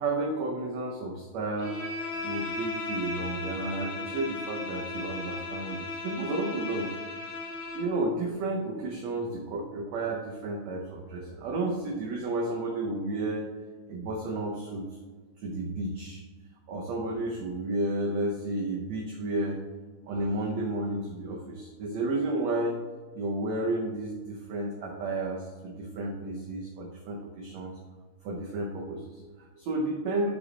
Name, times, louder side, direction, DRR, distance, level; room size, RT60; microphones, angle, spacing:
voice 1, 0.0-1.8 2.2-6.9 7.7-13.5 13.9-14.9 15.4-16.2 16.7-19.6 20.1-22.8 23.1-27.7 28.2-30.3, right 2 dB, 75° right, -1 dB, 1.6 m, -32 dB
Bowed string instrument, 1.6-8.0, left 3 dB, 60° left, 2.3 m, -36 dB
6.2 x 5.1 x 4.0 m, 1.4 s
omnidirectional pair, 4.0 m